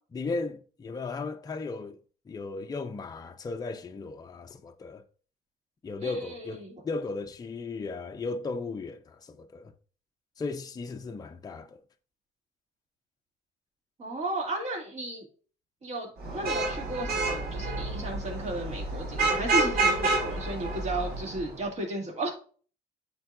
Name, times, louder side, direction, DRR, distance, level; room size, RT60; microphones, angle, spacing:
voice 1, 0.1-2.0 2.3-5.0 5.8-9.7 10.4-11.8, left 3 dB, 20° left, 0.6 m, -36 dB
voice 2, 6.0-6.8 14.0-15.3 15.8-22.3, right 2 dB, 40° right, 2.7 m, -34 dB
Vehicle horn car horn honking / Traffic noise roadway noise, 16.2-21.5, right 3 dB, 65° right, 1.9 m, -29 dB
8.6 x 4.5 x 2.6 m
cardioid pair, 110°, 17 cm